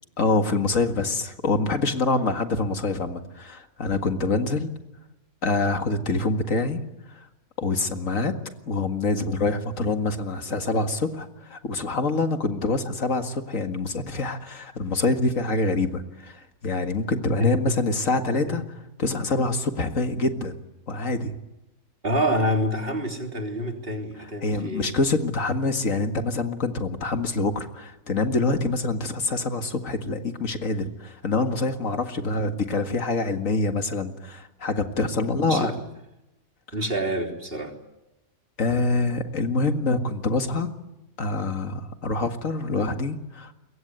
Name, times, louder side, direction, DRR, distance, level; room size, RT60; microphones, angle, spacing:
voice 1, 0.2-4.7 5.4-6.8 7.2-7.3 7.6-8.4 8.7-18.6 19.0-20.6 20.9-21.4 24.4-35.7 38.6-40.7 41.2-43.5, left 3 dB, 70° left, 6 dB, 2.3 m, -25 dB
voice 2, 17.4-17.8 18.5-18.6 22.0-24.9 35.5-35.7 36.7-37.8 38.7-38.9, equal, 40° right, 3 dB, 3.7 m, -27 dB
24.5 x 22.5 x 9.5 m, 0.97 s
omnidirectional pair, 1.4 m